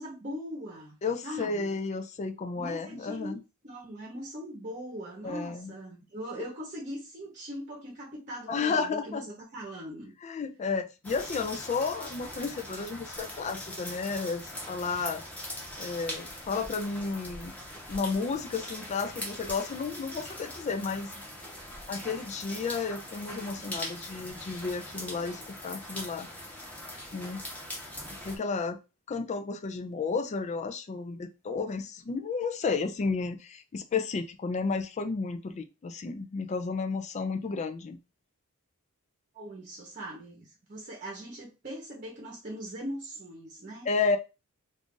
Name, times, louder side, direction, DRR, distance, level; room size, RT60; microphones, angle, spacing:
voice 1, 0.0-1.0 1.2-1.7 2.5-3.4 3.6-10.1 39.3-43.9, equal, 35° right, -3 dB, 0.9 m, -40 dB
voice 2, 1.0-3.4 5.2-5.7 8.5-9.2 10.2-15.2 15.8-17.5 17.9-21.1 21.9-26.3 27.1-27.4 28.2-28.8 29.1-38.0 43.9-44.2, left 4 dB, 35° left, 7 dB, 0.3 m, -32 dB
sound 1, 11.0-28.4, equal, 5° left, 0.9 m, -41 dB
2.5 x 2.4 x 3.7 m, 0.28 s
head